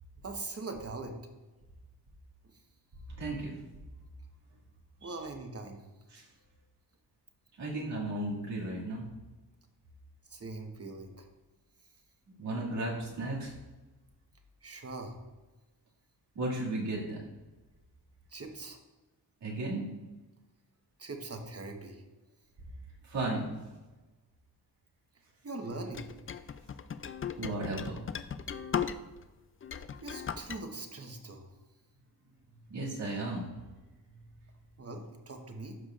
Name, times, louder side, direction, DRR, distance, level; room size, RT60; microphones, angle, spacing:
voice 1, 0.2-1.2 5.0-5.8 10.3-11.3 14.6-15.2 18.3-18.8 21.0-22.0 25.4-26.1 30.0-31.5 34.8-35.8, right 2 dB, 35° right, 4 dB, 1.2 m, -41 dB
voice 2, 3.1-3.6 5.0-5.2 6.1-6.2 7.6-9.0 12.4-13.5 16.3-17.2 19.4-19.9 23.0-23.5 27.4-28.0 32.7-33.6, right 2 dB, 85° right, -5 dB, 2.4 m, -35 dB
sound 1, 25.9-29.3 29.6-30.6, left 7 dB, 35° left, 0.4 m, -37 dB
12.0 x 4.9 x 2.5 m, 1.2 s
cardioid pair, 65°, 41 cm